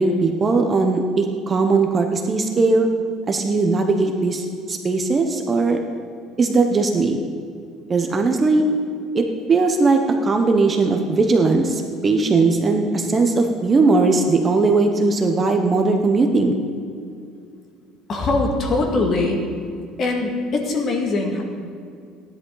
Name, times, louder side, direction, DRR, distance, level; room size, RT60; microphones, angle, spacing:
voice 1, 0.0-2.9 3.3-5.8 6.4-7.2 7.9-8.6 9.1-16.5, right 3 dB, 20° right, 4 dB, 0.8 m, -19 dB
voice 2, 18.1-19.5 20.0-21.4, left 2 dB, 35° left, 2 dB, 1.8 m, -22 dB
16.0 x 10.5 x 3.9 m, 2.4 s
cardioid pair, 155°, 0 cm